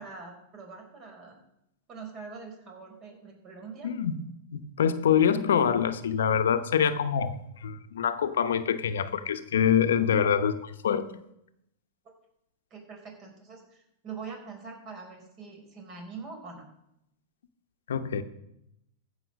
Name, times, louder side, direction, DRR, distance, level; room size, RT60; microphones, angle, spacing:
voice 1, 0.0-1.4 1.9-3.9 12.7-16.7, right 5 dB, 35° right, 2 dB, 4.3 m, -43 dB
voice 2, 3.8-4.2 4.5-11.1 17.9-18.2, left 8 dB, 85° left, 10 dB, 0.9 m, -25 dB
15.0 x 5.6 x 6.2 m, 0.80 s
hypercardioid pair, 125°, 0 cm